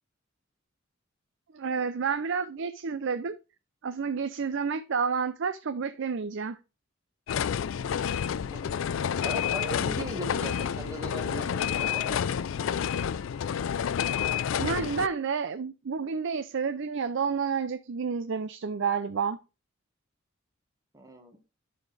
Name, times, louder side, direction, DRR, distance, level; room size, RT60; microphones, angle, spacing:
voice 1, 1.5-3.4 3.8-6.6 14.6-19.4, right 5 dB, 65° right, 0.5 m, -30 dB
sound 1, 7.3-15.1, left 8 dB, 70° left, 0.3 m, -29 dB
voice 2, 9.2-12.2 20.9-21.4, right 1 dB, 15° right, 1.5 m, -39 dB
11.5 x 4.3 x 3.3 m
head